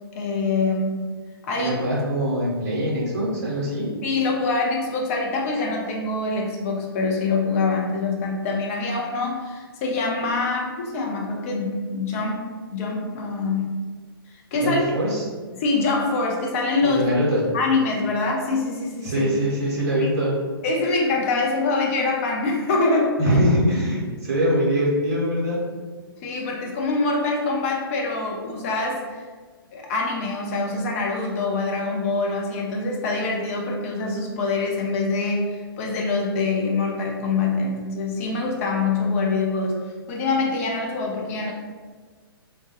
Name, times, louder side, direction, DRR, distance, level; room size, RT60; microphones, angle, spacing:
voice 1, 0.1-1.1 1.4-1.9 4.0-13.7 14.5-14.8 15.5-17.0 17.5-19.3 20.6-23.1 26.2-29.0 29.7-39.8 40.1-41.5, left 3 dB, 35° left, -1 dB, 0.5 m, -24 dB
voice 2, 1.6-3.9 14.6-15.3 16.8-17.4 19.0-20.4 23.2-25.6, equal, 45° right, -5 dB, 0.7 m, -23 dB
2.1 x 2.1 x 2.8 m, 1.5 s
figure-of-eight pair, 115°, 13 cm